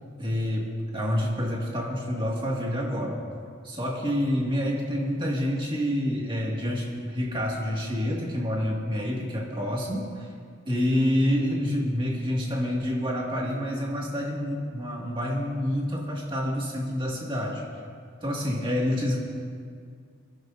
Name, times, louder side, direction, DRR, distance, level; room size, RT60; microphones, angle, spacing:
voice 1, 0.2-3.2 3.6-10.3 10.7-17.6 18.2-19.2, equal, 25° right, -3 dB, 2.0 m, -28 dB
26.5 x 11.0 x 2.7 m, 2.2 s
head